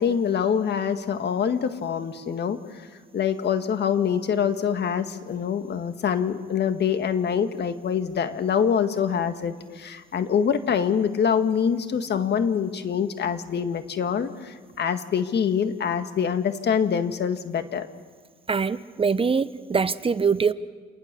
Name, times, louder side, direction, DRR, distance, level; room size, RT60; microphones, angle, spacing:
voice 1, 0.0-2.6 3.1-17.9, left 7 dB, 60° left, 9 dB, 1.8 m, -25 dB
voice 2, 18.5-20.5, right 5 dB, 30° right, 15 dB, 0.8 m, -23 dB
29.0 x 19.5 x 6.9 m, 1.5 s
cardioid pair, 90°, 20 cm